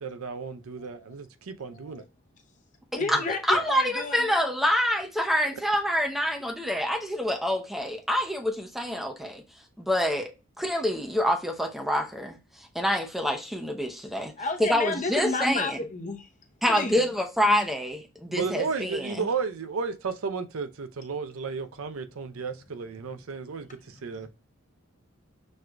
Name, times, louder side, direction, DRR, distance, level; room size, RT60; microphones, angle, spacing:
voice 1, 0.0-2.0 3.1-3.2 18.3-24.3, right 5 dB, 90° right, 0.5 m, -33 dB
voice 2, 1.6-2.0 3.0-4.4 14.4-16.3 16.7-17.1 24.1-24.3, left 3 dB, 35° left, 0.7 m, -32 dB
voice 3, 3.1-9.4 9.8-10.3 10.6-14.3 14.6-15.8 16.6-19.3, equal, ahead, 0.6 m, -26 dB
6.1 x 2.5 x 2.2 m
head